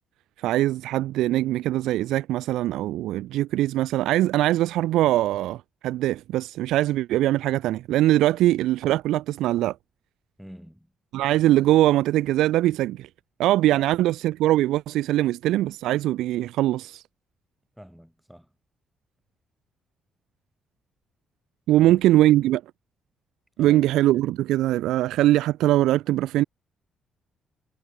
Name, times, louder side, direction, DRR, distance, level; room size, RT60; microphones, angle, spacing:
voice 1, 0.4-9.8 11.1-13.1 13.4-17.0 21.7-22.6 23.6-26.4, right 15 dB, 90° right, 0.5 m, -22 dB
voice 2, 10.4-10.9 13.7-13.8 17.8-18.5 21.8-22.1 23.6-24.0, equal, ahead, 5.5 m, -45 dB
cardioid pair, 90°, 0 cm